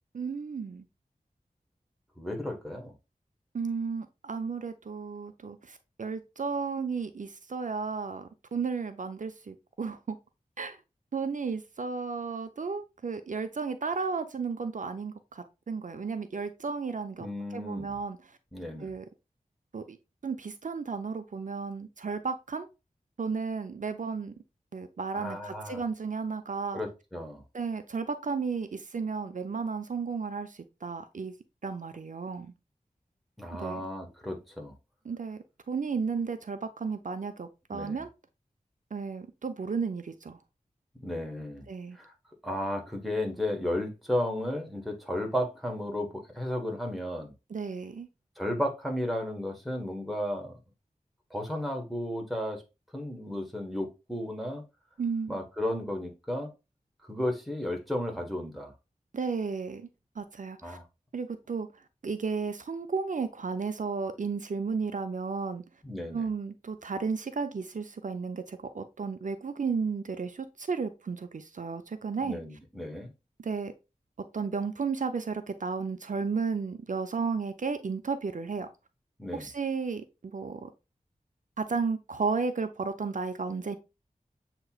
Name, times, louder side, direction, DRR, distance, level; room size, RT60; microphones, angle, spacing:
voice 1, 0.1-0.8 3.5-10.2 10.6-10.8 11.1-17.3 17.5-18.3 18.8-19.1 19.7-20.0 20.2-22.7 23.2-24.3 24.7-26.8 27.5-31.3 31.6-32.5 33.5-33.9 35.0-35.4 35.7-38.1 38.9-40.4 41.7-42.0 47.5-48.1 55.0-55.4 59.1-59.9 60.2-60.8 61.1-61.7 62.0-65.6 66.1-72.4 73.4-73.7 74.2-78.7 79.3-80.7 81.6-83.8, right 5 dB, 60° right, 0.5 m, -33 dB
voice 2, 2.2-2.9 17.2-18.0 18.5-18.9 25.1-25.8 26.7-27.4 33.4-34.7 37.7-38.0 41.0-41.6 41.9-42.1 42.4-47.3 48.4-50.6 51.3-52.6 52.9-54.6 55.3-56.5 57.0-58.7 60.6-60.8 65.8-66.3 72.2-73.1 79.2-79.5, left 1 dB, ahead, 1.3 m, -33 dB
7.7 x 2.9 x 2.3 m
wide cardioid pair, 55°, 15 cm